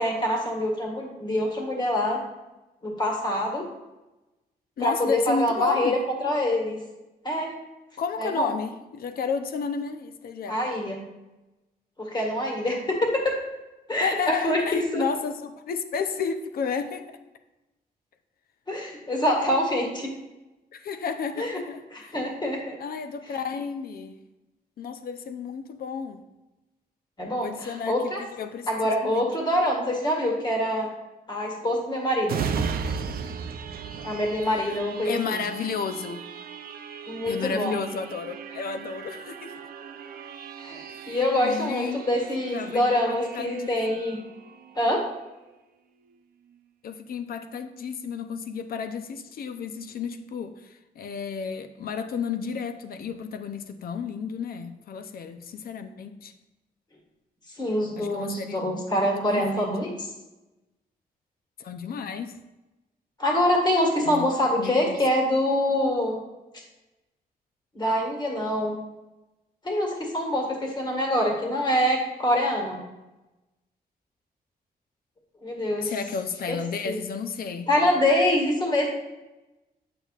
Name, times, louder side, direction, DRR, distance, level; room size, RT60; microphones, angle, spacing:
voice 1, 0.0-2.2 2.8-3.6 4.8-6.0 6.2-6.8 7.2-7.5 8.2-8.5 10.5-11.0 12.0-13.4 13.9-15.0 18.7-20.1 21.4-21.6 21.9-22.8 27.2-28.2 28.7-30.9 31.3-32.4 34.0-35.4 37.1-37.8 40.6-44.2 44.7-45.0 57.6-60.1 63.2-66.2 67.7-68.8 69.6-72.8 75.4-75.9 76.8-77.0 77.7-79.1, left 1 dB, 25° left, 0 dB, 1.7 m, -25 dB
voice 2, 4.8-6.0 8.0-10.6 14.0-17.1 20.7-22.2 22.8-24.2 24.8-26.2 27.4-29.3 35.0-36.2 37.3-39.5 40.9-42.0 42.5-43.7 46.8-56.3 58.0-59.0 59.3-59.7 61.6-62.4 64.0-64.3 64.6-65.0 75.8-77.7, left 6 dB, 65° left, 9 dB, 0.6 m, -32 dB
sound 1, 32.2-45.6 46.0-46.2, right 6 dB, 70° right, 0.5 m, -37 dB
9.0 x 6.9 x 2.4 m, 1.0 s
wide cardioid pair, 135°, 16 cm